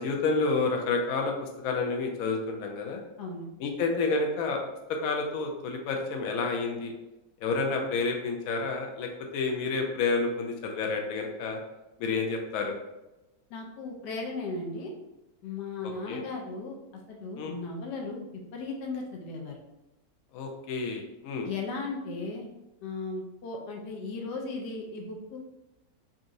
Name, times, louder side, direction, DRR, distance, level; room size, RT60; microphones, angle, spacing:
voice 1, 0.0-3.0 3.6-4.6 5.0-6.9 7.4-11.6 12.0-12.7 15.8-16.2 17.4-17.6 20.3-21.5, left 4 dB, 70° left, 2 dB, 0.9 m, -29 dB
voice 2, 13.5-14.9 15.4-16.8 17.1-18.3 18.5-19.5 21.4-22.4 22.8-25.4, left 3 dB, 85° left, 1 dB, 1.3 m, -36 dB
4.0 x 2.4 x 2.6 m, 0.98 s
omnidirectional pair, 1.8 m